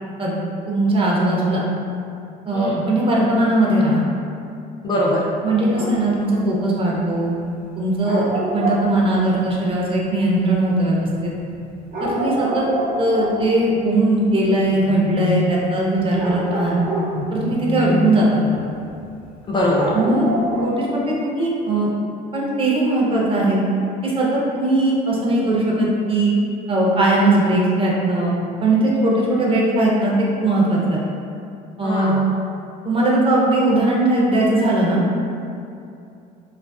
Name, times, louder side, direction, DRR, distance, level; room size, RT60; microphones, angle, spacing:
voice 1, 0.7-1.6 2.5-4.0 5.4-7.3 7.8-8.2 8.5-11.3 12.0-12.6 13.0-16.8 17.3-18.6 19.9-20.3 20.6-21.9 22.3-23.6 24.0-26.3 26.7-28.3 28.6-31.0 31.8-32.2 32.8-35.0, right 1 dB, 30° right, -5 dB, 0.5 m, -19 dB
voice 2, 2.5-2.8 4.8-5.2 14.9-15.6 17.1-18.1 19.5-20.0 31.8-32.2, left 1 dB, 30° left, -5 dB, 0.3 m, -23 dB
sound 1, 5.5-6.0 8.0-8.9 11.2-11.3 11.9-13.4 16.1-17.9 18.3-18.7 19.0-19.1 19.7-20.6, right 2 dB, 55° right, 1.0 m, -26 dB
2.4 x 2.3 x 2.2 m, 2.5 s
cardioid pair, 110°, 17 cm